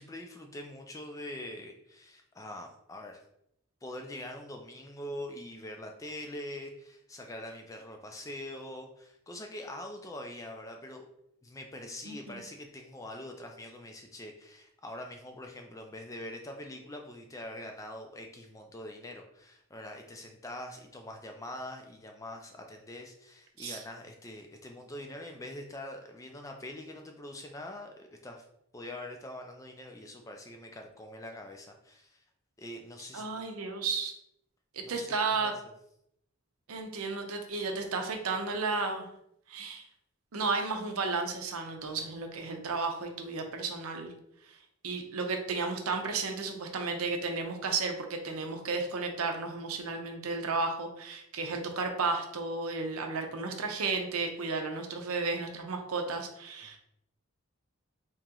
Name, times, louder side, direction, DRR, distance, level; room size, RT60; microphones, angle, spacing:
voice 1, 0.0-3.2 3.8-11.1 11.4-28.5 28.7-32.2 32.6-33.2 34.8-35.5, left 1 dB, 15° left, 3 dB, 0.3 m, -44 dB
voice 2, 12.1-12.4 23.6-23.8 33.1-34.1 34.7-35.5 36.7-39.1 39.5-39.8 40.3-44.1 44.8-56.8, right 4 dB, 85° right, 4 dB, 0.6 m, -33 dB
3.0 x 2.9 x 3.6 m, 0.77 s
head